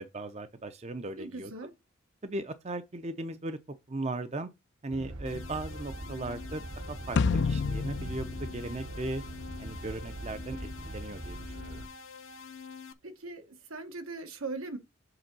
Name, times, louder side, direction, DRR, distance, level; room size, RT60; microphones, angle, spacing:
voice 1, 0.0-1.5 2.2-3.6 3.9-4.5 4.8-9.2 9.6-11.9, right 2 dB, 30° right, 0.6 m, -37 dB
voice 2, 1.2-1.7 13.0-14.8, right 3 dB, 80° right, 1.4 m, -40 dB
sound 1, 4.9-11.9, right 1 dB, 60° right, 1.1 m, -41 dB
sound 2, 5.3-12.9, left 6 dB, 70° left, 0.8 m, -47 dB
sound 3, 7.2-9.6, left 5 dB, 55° left, 0.4 m, -30 dB
7.7 x 3.7 x 6.1 m
head